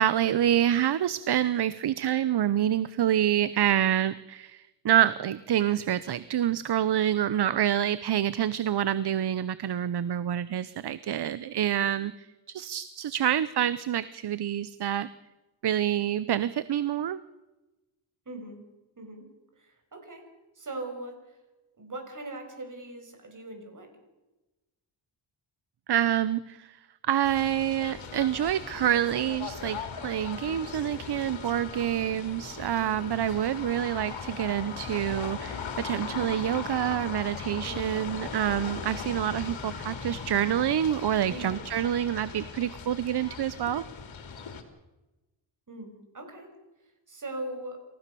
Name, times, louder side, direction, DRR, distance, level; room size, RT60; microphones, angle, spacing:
voice 1, 0.0-15.1 15.6-17.2 25.9-26.8 27.0-43.9, right 11 dB, 55° right, 16 dB, 0.8 m, -27 dB
voice 2, 18.3-18.6 19.0-19.3 19.6-20.2 20.6-21.2 21.8-23.9 32.7-33.0 37.6-38.0 41.3-41.6 45.7-46.5 47.1-47.8, right 2 dB, 40° right, 5 dB, 6.1 m, -40 dB
sound 1, 27.2-44.6, left 6 dB, 70° left, 3.3 m, -39 dB
28.0 x 16.0 x 6.9 m, 1.1 s
cardioid pair, 105°, 47 cm